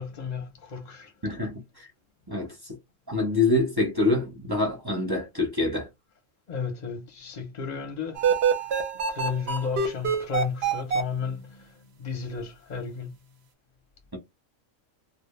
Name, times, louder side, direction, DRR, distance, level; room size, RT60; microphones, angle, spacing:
voice 1, 0.0-1.1 6.5-8.3 8.6-8.7 9.1-13.2, left 6 dB, 45° left, 0.6 m, -33 dB
voice 2, 1.2-1.9 2.3-2.8 3.1-5.9, left 2 dB, 20° right, 0.8 m, -26 dB
sound 1, 8.1-11.0, right 6 dB, 60° right, 0.8 m, -25 dB
2.1 x 2.1 x 3.0 m
omnidirectional pair, 1.4 m